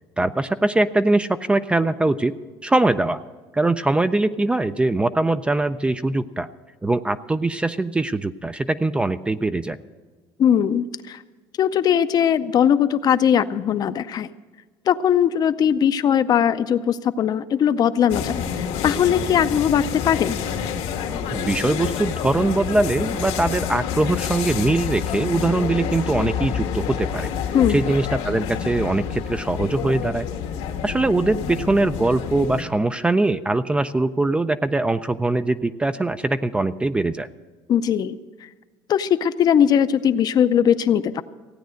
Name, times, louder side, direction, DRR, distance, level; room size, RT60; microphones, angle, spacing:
voice 1, 0.2-2.3 2.6-3.2 3.5-6.5 6.8-9.8 21.3-30.3 30.8-37.3, right 2 dB, 10° right, 11 dB, 0.3 m, -22 dB
voice 2, 10.4-11.2 11.6-14.3 14.9-20.4 27.5-27.8 37.7-38.2 38.9-41.2, left 9 dB, 40° left, 12 dB, 0.5 m, -19 dB
sound 1, 18.1-32.6, left 8 dB, 90° left, 1.7 m, -28 dB
16.0 x 9.2 x 6.4 m, 1.3 s
cardioid pair, 130°, 10 cm